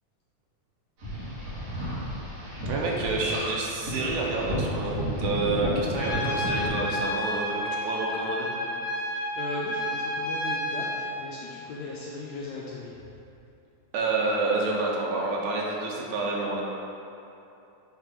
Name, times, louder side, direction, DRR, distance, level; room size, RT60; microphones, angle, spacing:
sound 1, 1.0-6.7, equal, 60° right, 2.5 m, -32 dB
voice 1, 2.7-8.5 13.9-16.6, right 3 dB, 80° right, -2 dB, 2.2 m, -28 dB
Trumpet, 6.0-11.2, left 1 dB, 60° left, 1.8 m, -30 dB
voice 2, 9.0-13.1, left 2 dB, 80° left, -4 dB, 1.6 m, -38 dB
6.5 x 3.5 x 4.3 m, 2.8 s
omnidirectional pair, 3.6 m